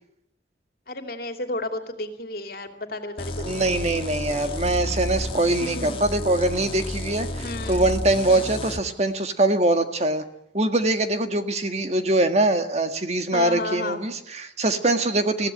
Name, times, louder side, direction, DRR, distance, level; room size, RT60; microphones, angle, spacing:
voice 1, 0.9-3.9 5.6-6.0 7.4-7.9 8.3-8.5 13.3-14.0, left 2 dB, 55° left, 6 dB, 2.6 m, -33 dB
sound 1, 3.2-8.8, left 1 dB, 30° left, 1.5 m, -31 dB
voice 2, 3.4-10.2 10.5-15.5, right 2 dB, 35° right, 7 dB, 1.7 m, -23 dB
21.5 x 16.5 x 9.7 m, 0.75 s
head